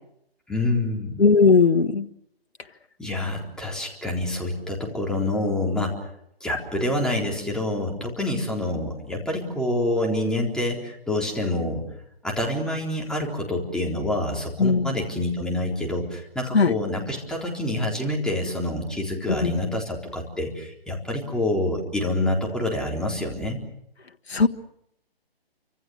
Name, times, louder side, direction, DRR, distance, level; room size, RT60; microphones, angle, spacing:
voice 1, 0.5-1.2 3.0-6.0 6.4-11.8 12.2-23.6, left 1 dB, ahead, -1 dB, 3.9 m, -27 dB
voice 2, 1.2-2.1 14.6-14.9 16.5-16.8 19.4-19.6 24.3-24.5, left 4 dB, 85° left, 6 dB, 1.6 m, -18 dB
29.0 x 26.0 x 6.5 m, 0.77 s
hypercardioid pair, 150°, 31 cm